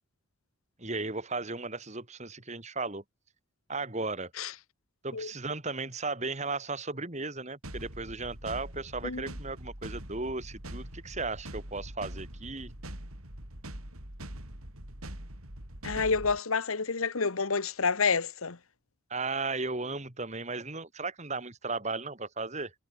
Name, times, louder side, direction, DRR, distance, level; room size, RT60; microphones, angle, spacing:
voice 1, 0.8-3.0 3.7-4.3 5.0-12.7 19.1-22.7, right 3 dB, 30° right, 2.6 m, -35 dB
sound 1, 7.6-16.4, right 1 dB, 85° right, 5.9 m, -43 dB
voice 2, 15.8-18.6, left 5 dB, 80° left, 1.3 m, -29 dB
head